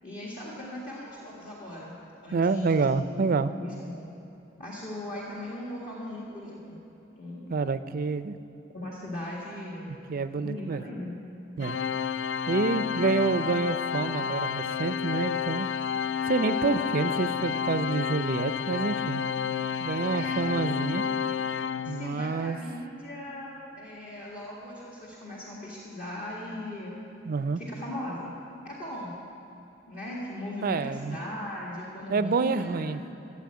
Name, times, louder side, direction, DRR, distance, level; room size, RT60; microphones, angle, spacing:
voice 1, 0.0-4.1 4.6-6.8 7.2-7.7 8.7-9.9 10.4-11.2 20.1-20.5 21.8-27.0 27.6-28.3 28.6-29.2 29.9-32.9, left 1 dB, 45° left, -6 dB, 1.8 m, -38 dB
voice 2, 2.3-3.5 7.5-8.4 9.9-10.8 11.6-11.8 12.5-15.7 16.2-19.2 19.8-21.0 21.9-22.6 27.3-27.6 30.6-31.2 32.1-33.0, right 4 dB, 50° right, 13 dB, 0.5 m, -28 dB
Organ, 11.6-22.4, left 7 dB, 65° left, 0.3 m, -30 dB
14.0 x 7.5 x 8.5 m, 2.9 s
head